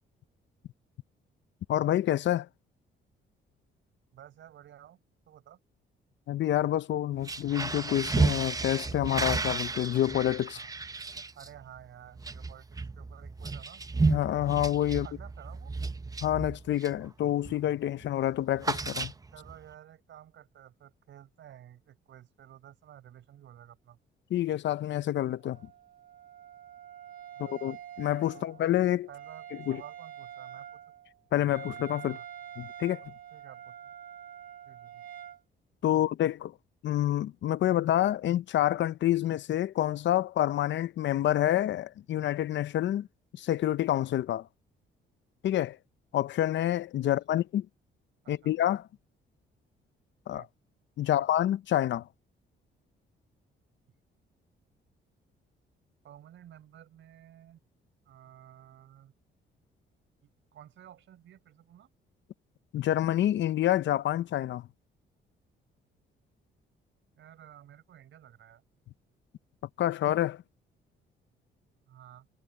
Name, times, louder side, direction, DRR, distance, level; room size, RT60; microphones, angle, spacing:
voice 1, 1.7-2.5 6.3-10.6 14.1-15.1 16.2-19.1 24.3-25.6 27.4-29.1 29.7-29.8 31.3-32.2 32.6-33.0 35.8-36.5 36.8-43.1 43.4-44.5 45.4-45.8 46.1-47.7 48.3-48.9 50.3-50.4 51.0-52.1 62.7-64.7 69.8-70.4, left 12 dB, 65° left, 0.7 m, -28 dB
voice 2, 4.1-5.0 5.3-5.6 10.5-10.7 11.3-13.8 15.0-15.7 19.3-24.0 27.3-27.7 28.3-28.8 29.1-30.8 32.1-32.3 33.3-33.9 34.6-35.0 36.0-36.1 47.1-47.4 48.2-48.5 50.3-50.5 51.0-51.2 56.0-57.6 58.0-59.1 60.2-61.9 67.2-68.6 71.9-72.3, right 11 dB, 70° right, 5.1 m, -53 dB
sound 1, 7.1-17.1 17.4-17.7 18.0-19.5, right 3 dB, 20° right, 0.8 m, -33 dB
Wind instrument woodwind instrument, 25.4-35.4, right 9 dB, 45° right, 2.0 m, -46 dB
cardioid pair, 90°, 20 cm